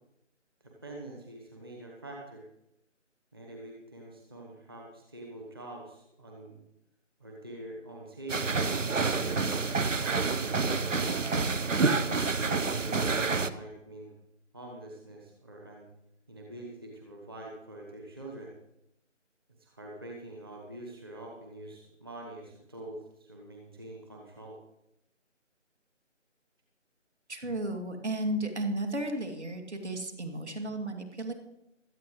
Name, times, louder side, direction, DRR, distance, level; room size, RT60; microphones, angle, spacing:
voice 1, 0.6-2.4 3.3-6.6 7.2-8.7 9.9-11.3 12.4-14.1 14.5-15.9 16.3-18.5 19.6-24.6, right 1 dB, 20° right, -1 dB, 1.1 m, -45 dB
sound 1, 8.3-13.5, right 4 dB, 80° right, 0.9 m, -28 dB
voice 2, 27.3-31.3, right 1 dB, 60° right, 4 dB, 2.7 m, -34 dB
17.0 x 13.0 x 3.2 m, 0.82 s
figure-of-eight pair, 165°, 38 cm